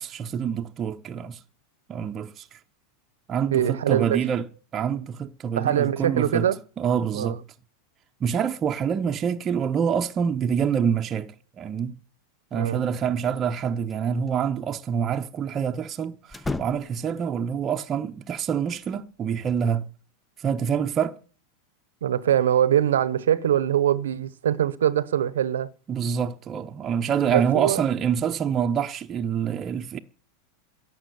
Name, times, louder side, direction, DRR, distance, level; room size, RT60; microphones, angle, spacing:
voice 1, 0.0-1.4 1.9-2.6 3.3-4.5 4.7-6.5 6.8-7.4 8.2-12.0 12.5-19.8 20.4-21.2 25.9-30.0, right 7 dB, 30° right, 0.8 m, -26 dB
voice 2, 3.5-4.2 5.6-6.6 7.1-7.3 12.5-12.8 22.0-25.7 27.3-27.8, right 10 dB, 85° right, 0.9 m, -23 dB
sound 1, 13.3-14.0 14.3-14.4 16.3-17.1 18.7-19.7, left 2 dB, 10° left, 0.6 m, -36 dB
11.5 x 7.6 x 9.6 m
hypercardioid pair, 115°, 0 cm